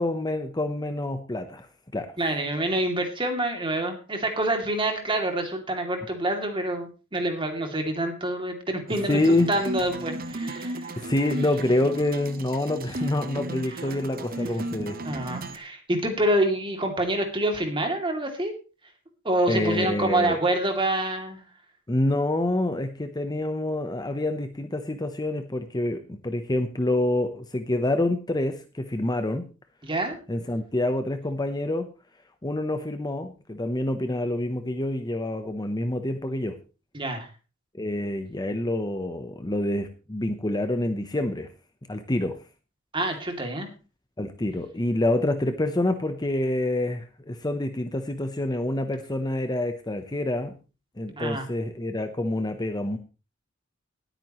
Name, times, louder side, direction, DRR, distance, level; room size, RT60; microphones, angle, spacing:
voice 1, 0.0-2.1 9.1-9.5 11.0-15.1 19.5-20.4 21.9-29.5 30.3-31.9 32.4-36.6 37.7-41.5 41.9-42.4 44.2-50.5 51.0-53.0, left 1 dB, 20° left, 8 dB, 0.9 m, -27 dB
voice 2, 2.2-10.9 15.0-18.5 19.2-21.4 29.8-30.2 36.9-37.3 42.9-43.7 51.2-51.4, right 1 dB, 25° right, 4 dB, 2.7 m, -27 dB
sound 1, 8.9-15.6, right 1 dB, 45° right, 1.1 m, -35 dB
19.5 x 9.1 x 3.1 m, 0.32 s
head